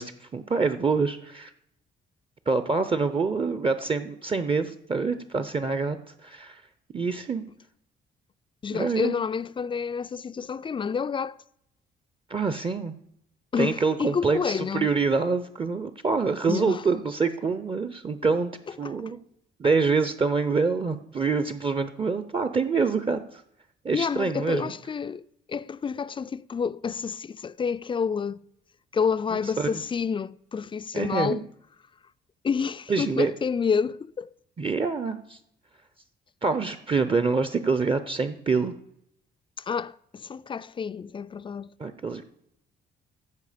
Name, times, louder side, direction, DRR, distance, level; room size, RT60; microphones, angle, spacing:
voice 1, 0.0-1.5 2.5-6.0 6.2-6.6 6.9-7.4 8.7-9.1 12.3-12.9 13.6-18.5 18.8-19.2 19.6-23.4 23.8-24.7 29.3-29.8 30.9-31.4 32.9-33.3 34.6-35.4 36.4-38.7 41.8-42.2, right 4 dB, 25° right, 0.6 m, -26 dB
voice 2, 8.6-11.4 13.5-14.9 16.5-16.8 18.8-18.9 23.9-25.2 25.5-28.4 28.9-31.5 32.4-34.3 39.6-41.7, left 6 dB, 25° left, 0.3 m, -29 dB
15.0 x 5.1 x 5.0 m
cardioid pair, 90°, 20 cm